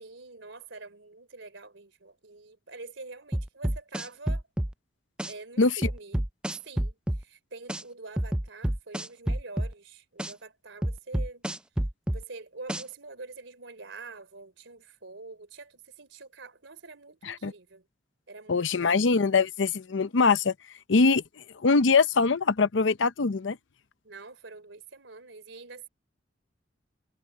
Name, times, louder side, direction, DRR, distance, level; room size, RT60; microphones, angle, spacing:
voice 1, 0.0-4.4 5.2-6.2 6.6-11.4 12.1-17.9 18.3-19.0 24.0-25.9, right 3 dB, 80° right, 3.2 m, -46 dB
sound 1, 3.3-4.7 5.2-5.3 5.8-7.2 7.7-7.8 8.2-9.7 10.2-10.3 10.8-12.2 12.7-12.8, right 1 dB, 5° right, 0.3 m, -28 dB
voice 2, 18.5-20.5 20.9-21.2 21.6-23.6, left 4 dB, 80° left, 0.7 m, -23 dB
head